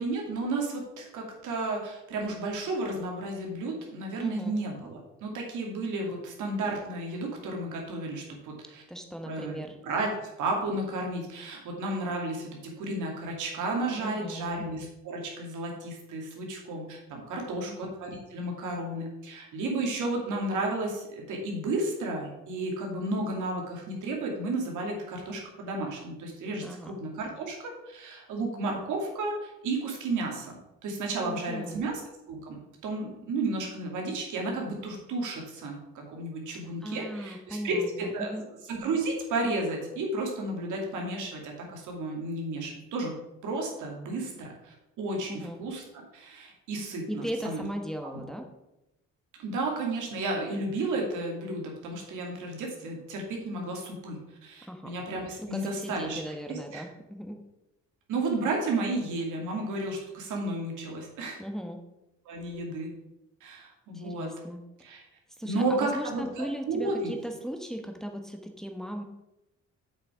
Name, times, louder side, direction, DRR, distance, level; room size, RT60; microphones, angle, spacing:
voice 1, 0.0-8.8 9.3-30.6 30.8-32.0 32.3-32.6 32.8-38.4 38.7-43.1 43.4-47.6 48.0-48.2 49.4-56.2 56.5-56.8 58.1-61.4 62.3-62.9 63.4-64.3 64.8-65.0 65.4-67.1, right 2 dB, 85° right, 0 dB, 2.5 m, -33 dB
voice 2, 4.2-4.5 8.9-9.8 14.0-14.6 17.3-17.8 26.6-27.0 31.2-31.9 36.8-38.4 45.3-45.6 47.1-48.5 54.7-54.9 55.4-57.4 61.4-61.8 63.9-64.6 65.4-69.0, equal, ahead, 4 dB, 1.1 m, -37 dB
7.4 x 6.6 x 5.0 m, 0.92 s
cardioid pair, 90°, 30 cm